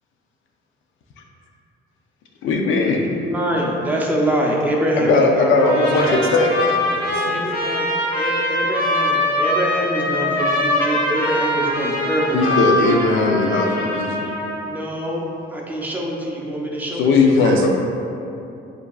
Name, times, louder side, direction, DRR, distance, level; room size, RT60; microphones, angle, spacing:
voice 1, 2.4-3.1 5.0-6.5 12.3-14.3 17.0-17.7, left 3 dB, 75° left, 2 dB, 0.5 m, -18 dB
voice 2, 3.0-6.2 7.3-7.8 8.2-13.1 13.4-13.5 14.6-15.3 15.5-17.4, right 1 dB, 10° right, -2 dB, 0.5 m, -25 dB
Trumpet, 5.5-14.7, left 1 dB, 55° left, 0.9 m, -22 dB
voice 3, 6.4-7.3 17.4-17.7, right 4 dB, 80° right, 2 dB, 0.5 m, -29 dB
7.1 x 2.6 x 2.3 m, 2.7 s
cardioid pair, 160°, 20 cm